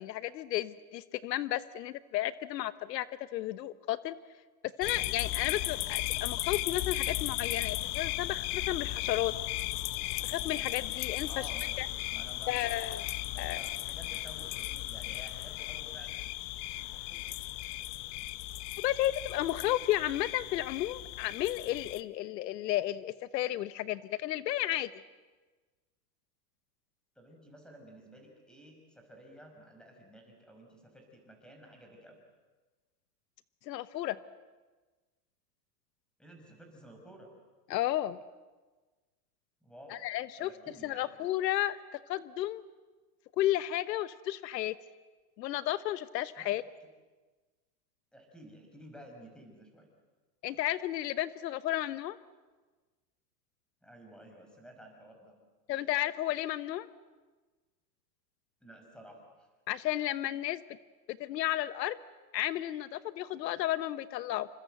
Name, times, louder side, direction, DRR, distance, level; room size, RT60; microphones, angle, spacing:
voice 1, 0.0-3.1 3.3-4.1 4.8-9.3 10.2-11.5 11.8-11.9 12.5-13.1 13.4-13.6 18.8-24.9 33.7-34.2 37.7-38.2 39.9-40.5 40.8-42.6 43.4-44.7 45.4-46.6 50.4-52.2 55.7-56.9 59.7-60.6 61.1-62.0 62.3-64.5, left 14 dB, 75° left, 14 dB, 1.1 m, -33 dB
sound 1, 4.8-22.0, left 17 dB, 45° left, 0.9 m, -36 dB
voice 2, 11.3-12.6 13.3-16.2 16.9-17.2 27.2-32.2 36.2-37.3 39.6-40.1 40.4-41.1 46.4-46.6 48.1-49.9 53.8-55.3 58.6-59.5, right 1 dB, ahead, 2 dB, 5.8 m, -53 dB
28.5 x 26.0 x 7.9 m, 1.3 s
supercardioid pair, 150°, 50 cm